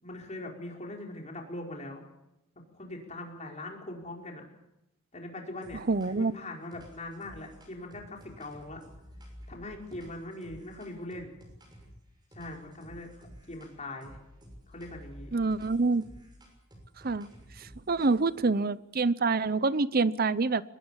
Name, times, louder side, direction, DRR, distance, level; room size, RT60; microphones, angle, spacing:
voice 1, 0.0-2.0 2.7-4.4 5.1-8.8 9.5-11.3 12.3-13.1 13.5-14.2 14.7-15.3, left 1 dB, 35° left, 1 dB, 5.1 m, -41 dB
sound 1, 5.6-6.3 6.7-12.0 12.3-13.7 14.0-18.4, equal, 20° right, 6.4 m, -52 dB
voice 2, 5.9-6.3 15.3-16.0 17.0-17.3 17.9-20.6, right 3 dB, 45° right, 17 dB, 0.7 m, -26 dB
24.0 x 20.0 x 7.4 m, 0.89 s
head